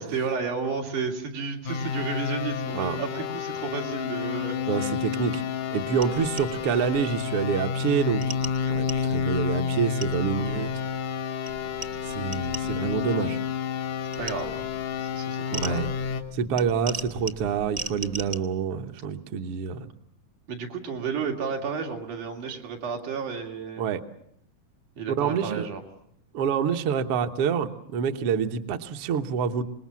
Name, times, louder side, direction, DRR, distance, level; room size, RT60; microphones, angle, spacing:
voice 1, 0.0-4.9 14.2-14.6 15.0-15.8 20.5-23.8 25.0-25.8, right 5 dB, 85° right, 1 dB, 4.3 m, -32 dB
sound 1, 1.7-16.2, left 7 dB, 80° left, 2.8 m, -30 dB
voice 2, 4.7-5.4 5.7-8.2 8.7-10.7 12.0-13.4 15.5-15.9 16.3-19.9 23.8-24.0 25.2-25.7 26.3-29.6, right 7 dB, 60° right, 7 dB, 1.8 m, -27 dB
sound 2, 6.0-7.4 8.2-11.1 11.5-13.6 14.1-18.4, right 3 dB, 45° right, 0.6 m, -40 dB
26.0 x 20.5 x 7.3 m, 0.71 s
omnidirectional pair, 3.5 m